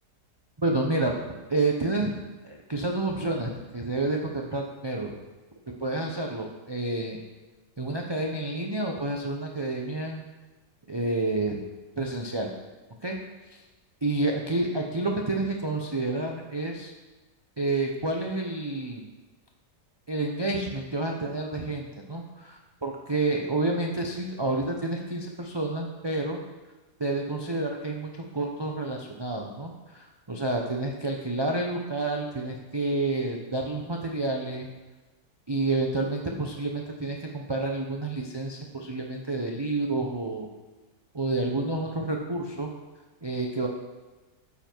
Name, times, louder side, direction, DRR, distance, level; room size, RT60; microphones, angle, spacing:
voice 1, 0.6-1.1 1.5-2.1 2.4-5.1 5.8-7.2 7.8-10.2 10.9-11.6 12.0-12.5 13.0-13.2 13.5-13.6 14.0-16.9 17.6-19.1 20.1-26.4 27.0-34.7 35.5-40.5 41.1-42.7 43.2-43.7, right 2 dB, 25° right, 0 dB, 0.5 m, -29 dB
12.0 x 7.4 x 4.6 m, 1.2 s
omnidirectional pair, 1.8 m